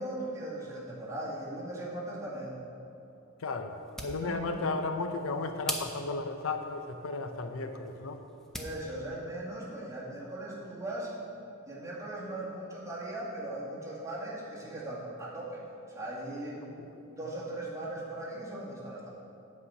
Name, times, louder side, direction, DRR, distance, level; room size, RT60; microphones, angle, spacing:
voice 1, 0.0-2.6 4.2-4.4 8.6-11.1 11.7-15.6 15.9-16.6 17.1-19.1, right 1 dB, 15° right, -7 dB, 2.2 m, -39 dB
voice 2, 3.4-8.2 16.8-16.9, left 3 dB, 70° left, 6 dB, 0.6 m, -34 dB
sound 1, 3.7-8.8, equal, ahead, 0.8 m, -43 dB
8.5 x 5.7 x 7.7 m, 2.8 s
head